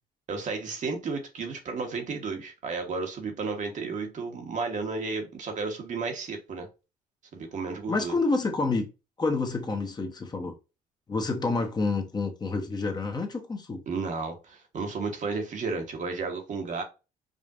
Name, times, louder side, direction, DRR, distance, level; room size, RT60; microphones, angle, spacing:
voice 1, 0.3-6.7 7.3-8.2 13.9-16.8, right 4 dB, 50° right, 1.2 m, -33 dB
voice 2, 7.9-8.9 9.2-10.5 11.1-13.8, left 3 dB, 25° left, 1.0 m, -28 dB
5.1 x 2.5 x 2.5 m
cardioid pair, 95°, 16 cm